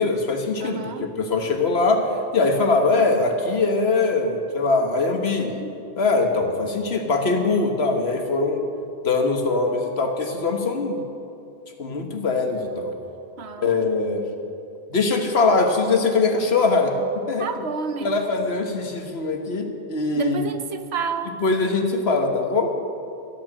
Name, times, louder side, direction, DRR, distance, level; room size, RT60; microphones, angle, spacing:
voice 1, 0.0-5.5 6.0-8.6 9.0-11.0 11.8-12.9 13.6-14.2 14.9-17.0 17.3-17.5 18.0-20.5 21.4-22.7, left 3 dB, 75° left, 3 dB, 1.6 m, -22 dB
voice 2, 0.6-1.1 5.4-5.8 13.4-13.8 17.4-18.3 20.1-21.4, right 6 dB, 80° right, 9 dB, 1.1 m, -31 dB
13.0 x 8.9 x 7.5 m, 2.6 s
omnidirectional pair, 1.1 m